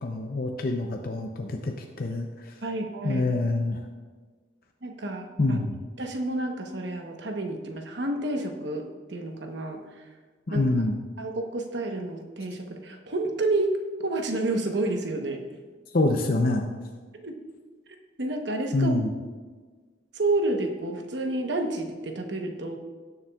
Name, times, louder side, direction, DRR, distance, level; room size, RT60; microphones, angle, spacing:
voice 1, 0.0-2.6 3.0-3.8 5.4-5.8 10.5-11.0 15.9-16.7 18.7-19.1, left 2 dB, 50° left, 3 dB, 0.6 m, -26 dB
voice 2, 2.6-3.3 4.8-5.6 6.0-9.8 10.5-10.6 11.2-13.8 14.0-15.4 17.2-17.3 18.2-18.9 20.1-22.8, right 2 dB, 60° right, 4 dB, 1.1 m, -29 dB
17.5 x 7.1 x 2.4 m, 1.4 s
head